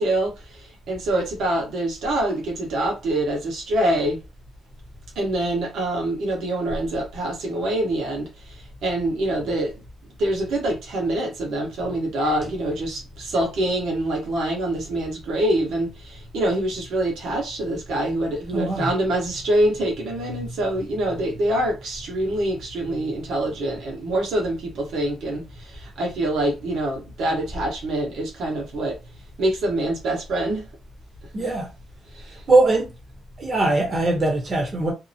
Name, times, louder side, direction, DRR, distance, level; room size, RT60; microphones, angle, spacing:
voice 1, 0.0-4.2 5.1-9.8 10.2-29.0 29.4-30.7 32.1-32.4, right 1 dB, 75° right, 1.2 m, -25 dB
voice 2, 18.5-18.9 31.3-31.7 32.3-32.9 33.4-34.9, right 2 dB, 40° right, 1.0 m, -21 dB
2.7 x 2.0 x 2.7 m
cardioid pair, 90°, 0 cm